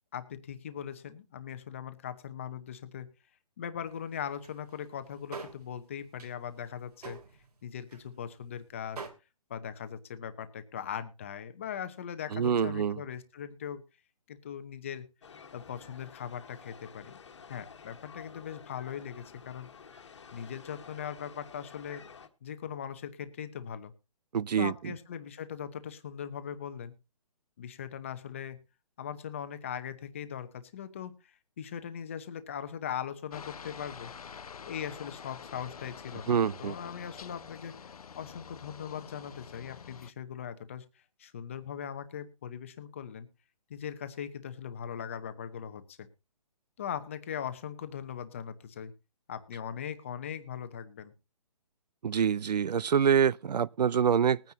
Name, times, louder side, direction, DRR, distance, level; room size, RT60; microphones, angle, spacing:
voice 1, 0.1-3.1 3.6-7.2 7.6-9.1 9.5-13.8 14.3-15.1 15.5-17.2 17.5-19.7 20.3-22.1 22.4-23.9 24.6-26.9 27.6-28.6 29.0-34.1 34.7-40.8 41.2-43.3 43.7-46.1 46.8-48.9 49.3-51.1, left 8 dB, 20° left, 0.8 m, -40 dB
sound 1, 3.9-4.0 4.2-4.8 5.0-5.7 6.0-6.3 6.7-7.6 7.9-8.1 8.4-8.5 8.9-9.1, right 4 dB, 70° right, 3.1 m, -44 dB
voice 2, 12.3-13.0 24.3-24.9 36.3-36.7 52.0-54.4, right 7 dB, 90° right, 0.6 m, -26 dB
sound 2, 15.2-22.3, left 6 dB, 45° left, 1.5 m, -51 dB
Aircraft, 33.3-40.1, left 6 dB, 65° left, 0.8 m, -47 dB
20.5 x 9.5 x 2.8 m
hypercardioid pair, 175°, 20 cm